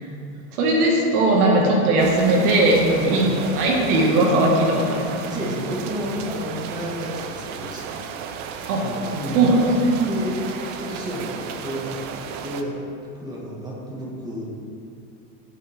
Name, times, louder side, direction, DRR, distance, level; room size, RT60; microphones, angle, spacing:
voice 1, 0.6-2.8 3.1-5.5 8.7-8.8 9.3-10.0, right 2 dB, 75° right, -1 dB, 2.5 m, -19 dB
sound 1, 2.0-12.6, right 7 dB, 25° right, 0.3 m, -34 dB
voice 2, 2.8-3.2 5.3-8.1 8.8-9.5 10.0-12.7 13.1-14.4, equal, 10° right, -4 dB, 2.2 m, -31 dB
14.5 x 7.9 x 3.8 m, 2.5 s
supercardioid pair, 140°, 45 cm